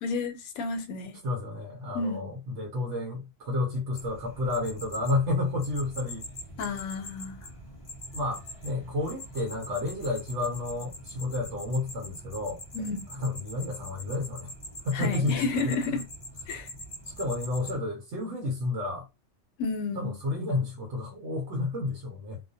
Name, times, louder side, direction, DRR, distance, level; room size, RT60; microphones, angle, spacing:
voice 1, 0.0-1.2 1.9-2.3 6.6-7.4 12.7-13.0 14.9-16.0 16.5-16.7 19.6-20.1, left 3 dB, 75° left, 1.0 m, -31 dB
voice 2, 1.2-6.3 8.1-12.6 13.2-14.5 14.8-15.7 17.2-19.1 19.9-22.4, left 2 dB, 65° right, 0.9 m, -31 dB
sound 1, 3.9-17.7, left 1 dB, 35° left, 0.6 m, -43 dB
2.4 x 2.2 x 2.6 m
omnidirectional pair, 1.4 m